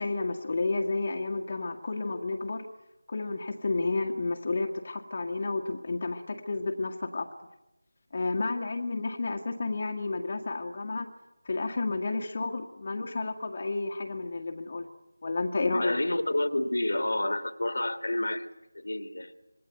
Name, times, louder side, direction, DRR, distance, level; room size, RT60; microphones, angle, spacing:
voice 1, 0.0-2.7 3.1-7.3 8.1-11.1 11.5-14.9 15.2-15.9, left 3 dB, 40° left, 2 dB, 1.8 m, -31 dB
voice 2, 15.7-18.5 18.7-19.3, left 1 dB, 65° left, 9 dB, 2.2 m, -29 dB
26.5 x 20.0 x 9.3 m, 0.97 s
figure-of-eight pair, 165°, 0 cm